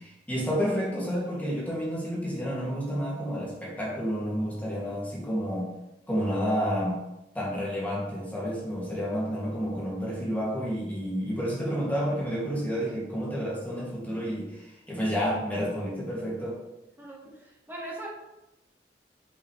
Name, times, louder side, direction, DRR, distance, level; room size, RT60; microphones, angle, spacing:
voice 1, 0.0-5.7 6.1-7.0 7.3-16.6, equal, 10° left, -6 dB, 2.1 m, -30 dB
voice 2, 17.0-18.1, right 1 dB, 10° right, -4 dB, 1.6 m, -40 dB
7.1 x 5.6 x 3.2 m, 0.95 s
head